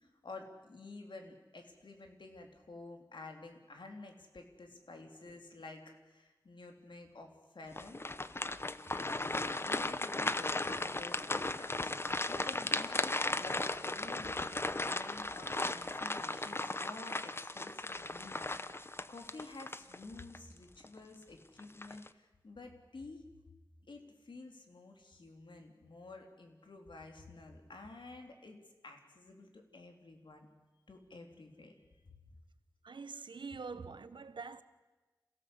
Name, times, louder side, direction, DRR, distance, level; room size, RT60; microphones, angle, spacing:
voice 1, 0.0-11.9 12.3-23.3 23.9-30.5 30.9-31.7, left 3 dB, 85° left, 3.4 m, -51 dB
sound 1, 7.7-20.4 20.8-21.0 21.6-22.1, left 2 dB, 30° left, 0.8 m, -36 dB
voice 2, 32.8-34.6, right 4 dB, 85° right, 1.1 m, -45 dB
27.5 x 16.5 x 8.1 m
wide cardioid pair, 80°, 8 cm